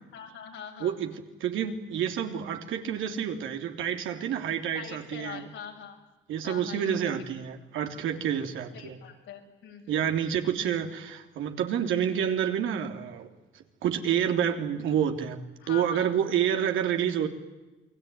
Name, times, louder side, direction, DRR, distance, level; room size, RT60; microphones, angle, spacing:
voice 1, 0.1-1.0 4.7-6.0 6.4-7.2 8.7-10.0 15.6-16.1, left 8 dB, 85° left, 2 dB, 6.9 m, -43 dB
voice 2, 0.8-5.4 6.3-9.0 9.9-15.4 15.7-17.3, right 9 dB, 85° right, 5 dB, 3.2 m, -29 dB
29.0 x 21.5 x 9.4 m, 1.1 s
cardioid pair, 90°, 20 cm